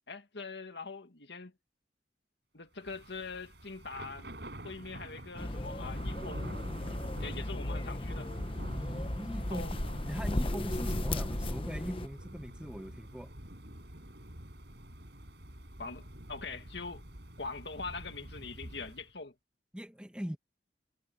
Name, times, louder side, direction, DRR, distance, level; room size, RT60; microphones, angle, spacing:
voice 1, 0.1-1.5 2.5-4.3 4.6-6.5 7.2-8.3 9.5-9.7 15.8-17.0 17.4-19.3, left 4 dB, 75° left, 2.0 m, -43 dB
Thunder / Rain, 2.8-19.1, right 1 dB, 65° right, 6.7 m, -47 dB
sound 1, 5.4-12.1, left 1 dB, 30° left, 1.0 m, -35 dB
voice 2, 8.6-9.7 10.1-13.3 19.7-20.4, equal, 5° right, 1.1 m, -41 dB
head